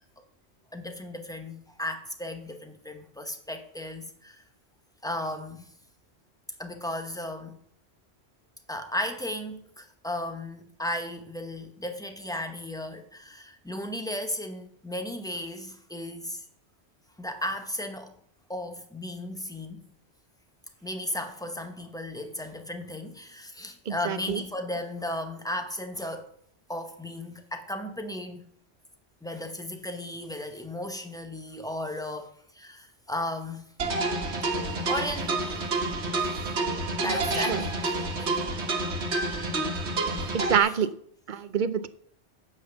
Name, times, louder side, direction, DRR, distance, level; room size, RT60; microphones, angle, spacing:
voice 1, 0.7-4.4 5.0-5.6 6.6-7.6 8.7-16.4 17.2-18.1 18.5-19.8 20.8-26.3 26.7-28.4 29.2-34.0 34.9-35.4 37.0-38.5 40.6-40.8, left 1 dB, 5° left, 1.0 m, -35 dB
voice 2, 23.9-24.4 37.0-37.6 40.3-40.9 41.3-41.9, right 7 dB, 55° right, 0.7 m, -27 dB
sound 1, 33.8-40.6, right 2 dB, 75° right, 1.7 m, -29 dB
9.2 x 5.9 x 6.9 m
omnidirectional pair, 1.1 m